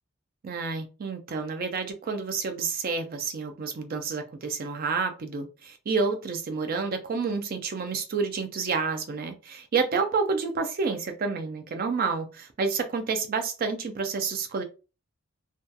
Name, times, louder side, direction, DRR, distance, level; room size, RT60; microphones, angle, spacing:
voice 1, 0.4-14.6, right 4 dB, 45° right, 6 dB, 0.4 m, -29 dB
2.7 x 2.2 x 2.2 m, 0.32 s
head